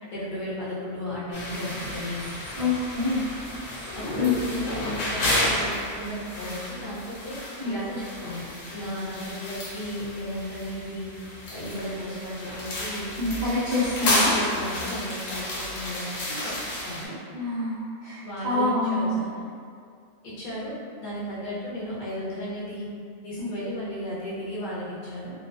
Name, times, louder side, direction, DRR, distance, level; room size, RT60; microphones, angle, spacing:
voice 1, 0.0-2.3 3.9-7.3 7.6-8.4 8.7-11.1 11.5-13.1 14.0-16.5 16.8-17.1 18.2-19.2 20.2-20.7 21.0-22.9 23.2-25.3, left 1 dB, 45° left, -8 dB, 0.6 m, -34 dB
sound 1, 1.3-17.1, left 1 dB, 70° left, 0.9 m, -31 dB
voice 2, 2.6-3.3 4.1-4.3 7.6-7.8 13.2-14.3 17.3-19.3 23.4-23.5, left 2 dB, 85° right, -11 dB, 0.4 m, -26 dB
2.3 x 2.2 x 2.4 m, 2.2 s
omnidirectional pair, 1.5 m